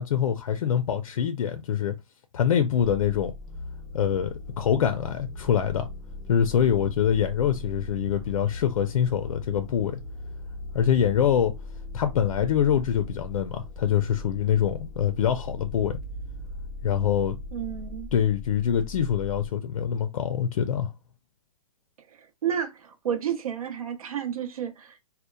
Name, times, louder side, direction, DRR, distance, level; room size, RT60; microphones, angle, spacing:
voice 1, 0.0-1.9 2.3-3.3 3.9-5.9 6.3-10.0 10.7-11.5 11.9-16.0 16.8-17.4 18.1-20.9, left 9 dB, 75° left, 0.4 m, -24 dB
sound 1, 2.8-19.5, left 2 dB, 5° left, 0.4 m, -39 dB
voice 2, 17.5-18.1 22.1-25.0, right 9 dB, 80° right, 0.7 m, -31 dB
2.9 x 2.1 x 2.2 m
hypercardioid pair, 145°, 18 cm